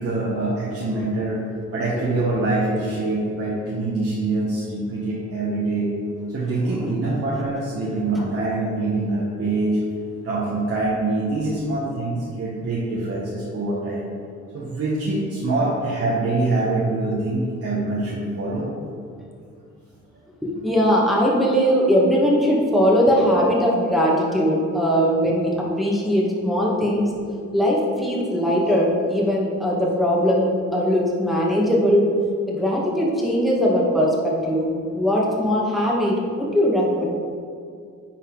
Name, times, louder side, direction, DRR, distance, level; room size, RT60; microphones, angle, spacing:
voice 1, 0.0-5.9 6.3-9.8 10.2-14.1 14.5-18.7, right 2 dB, 50° right, -6 dB, 1.4 m, -24 dB
voice 2, 20.4-27.1 27.5-32.1 32.5-37.0, equal, ahead, -4 dB, 1.8 m, -20 dB
10.5 x 4.2 x 4.0 m, 2.3 s
cardioid pair, 90°, 30 cm